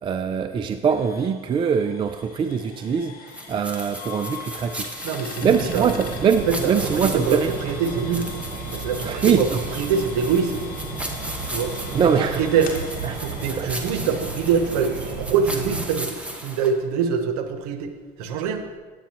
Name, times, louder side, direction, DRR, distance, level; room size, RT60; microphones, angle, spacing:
voice 1, 0.0-5.0 5.4-7.5 9.0-9.6 11.5-11.6 11.9-12.4 13.0-13.2 13.5-13.7, right 6 dB, 25° right, 9 dB, 0.4 m, -23 dB
sound 1, 0.9-16.6, left 7 dB, 55° left, 1.4 m, -42 dB
sound 2, 3.3-16.7, right 1 dB, 5° right, 1.1 m, -36 dB
voice 2, 5.0-5.9 6.5-8.3 8.7-10.6 11.5-12.7 13.1-17.9 18.2-18.6, right 6 dB, 85° right, 7 dB, 0.8 m, -24 dB
sound 3, 5.4-15.9, right 4 dB, 45° right, 1.0 m, -34 dB
9.1 x 9.0 x 2.9 m, 1.4 s
supercardioid pair, 95°, 19 cm